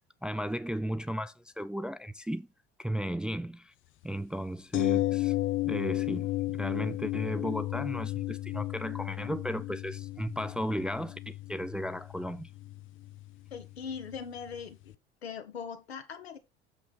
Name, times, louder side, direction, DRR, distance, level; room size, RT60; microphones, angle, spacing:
voice 1, 0.2-2.5 2.8-3.7 4.0-5.3 5.6-12.5, equal, 5° right, 0.4 m, -35 dB
sound 1, 4.7-14.6 14.9-15.0, left 16 dB, 40° left, 0.6 m, -34 dB
voice 2, 13.5-14.9 15.2-16.4, left 6 dB, 80° left, 1.4 m, -40 dB
7.2 x 5.9 x 4.1 m
figure-of-eight pair, 65°, 31 cm